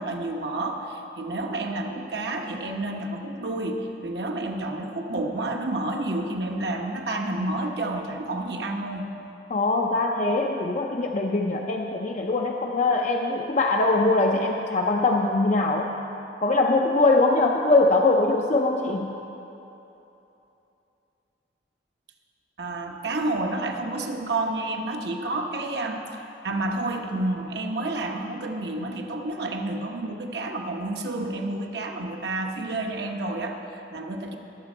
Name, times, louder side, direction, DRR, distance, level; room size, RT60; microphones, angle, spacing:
voice 1, 0.0-9.1 18.9-19.1 22.6-34.4, right 2 dB, 65° right, 2 dB, 1.0 m, -30 dB
voice 2, 9.5-15.9 16.4-19.1, left 2 dB, 40° left, 1 dB, 0.5 m, -22 dB
18.5 x 6.8 x 4.5 m, 3.0 s
head